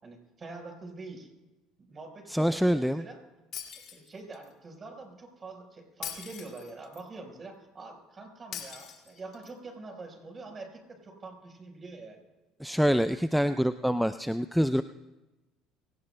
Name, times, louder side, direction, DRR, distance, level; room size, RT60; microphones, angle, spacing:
voice 1, 0.0-1.3 1.8-3.2 3.9-12.2, right 3 dB, 30° right, 4 dB, 4.4 m, -45 dB
voice 2, 2.3-3.0 12.6-14.8, equal, ahead, 11 dB, 0.4 m, -25 dB
Shatter, 3.5-4.5 6.0-7.0 8.5-9.5, left 9 dB, 55° left, 2.3 m, -41 dB
25.0 x 17.5 x 2.2 m, 1.1 s
supercardioid pair, 80°, 0 cm